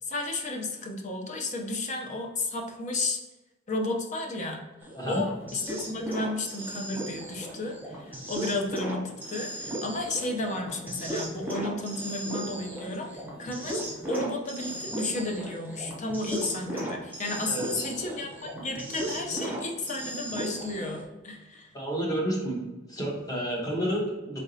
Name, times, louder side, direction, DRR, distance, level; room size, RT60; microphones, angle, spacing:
voice 1, 0.0-3.2 3.7-4.6 5.0-21.7, left 2 dB, 35° left, 3 dB, 0.6 m, -33 dB
sound 1, 4.8-21.0, right 1 dB, 10° right, 0.7 m, -36 dB
voice 2, 17.5-17.9 21.7-22.6 22.9-24.4, right 1 dB, 20° left, -2 dB, 0.9 m, -30 dB
3.8 x 3.5 x 2.7 m, 1.1 s
head